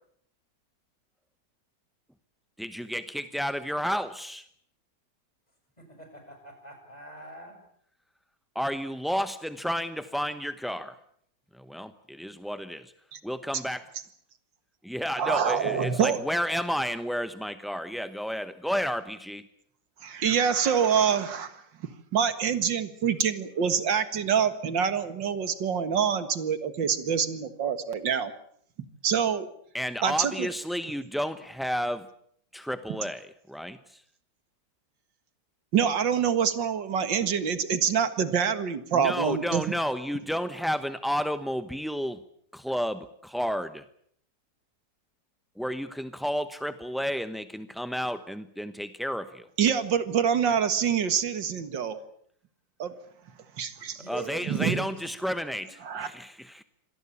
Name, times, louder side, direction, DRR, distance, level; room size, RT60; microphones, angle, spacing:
voice 1, 2.6-4.4 8.5-11.0 11.6-12.9 13.2-13.9 14.8-19.4 29.7-32.1 32.5-34.0 38.9-42.2 42.5-43.8 45.6-49.5 54.1-56.6, equal, ahead, 10 dB, 0.5 m, -31 dB
voice 2, 5.8-7.6 53.8-54.9, right 3 dB, 20° left, 4 dB, 7.4 m, -42 dB
voice 3, 15.2-16.2 20.0-21.6 22.1-28.3 29.0-29.5 30.0-30.5 35.7-39.6 49.6-52.0 52.8-52.9 53.6-54.0 54.5-54.8 55.8-56.1, right 7 dB, 90° right, 11 dB, 2.4 m, -26 dB
26.0 x 19.0 x 8.5 m, 0.66 s
omnidirectional pair, 1.9 m